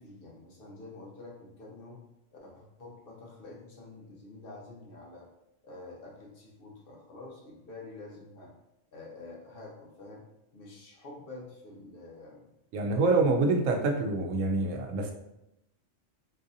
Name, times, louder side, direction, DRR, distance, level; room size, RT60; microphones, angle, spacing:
voice 1, 0.0-2.0 2.4-5.3 5.6-8.5 8.9-10.3 10.5-12.5, left 2 dB, 55° left, -3 dB, 0.9 m, -47 dB
voice 2, 12.7-15.1, right 3 dB, 85° right, 3 dB, 0.9 m, -26 dB
4.0 x 2.6 x 2.6 m, 0.86 s
omnidirectional pair, 1.3 m